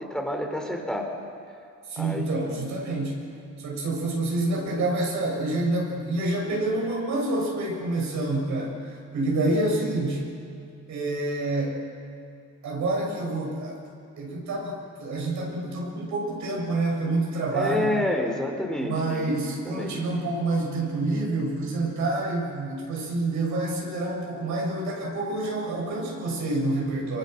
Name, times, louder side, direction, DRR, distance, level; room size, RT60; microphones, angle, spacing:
voice 1, 0.1-1.1 2.0-2.2 17.5-19.4 19.7-20.1, left 1 dB, ahead, 1 dB, 3.7 m, -28 dB
voice 2, 1.9-3.2 3.6-10.3 10.9-11.8 12.6-13.8 14.2-18.0 18.8-27.2, right 2 dB, 75° right, -1 dB, 7.0 m, -27 dB
25.5 x 24.0 x 6.7 m, 2.4 s
cardioid pair, 90°, 30 cm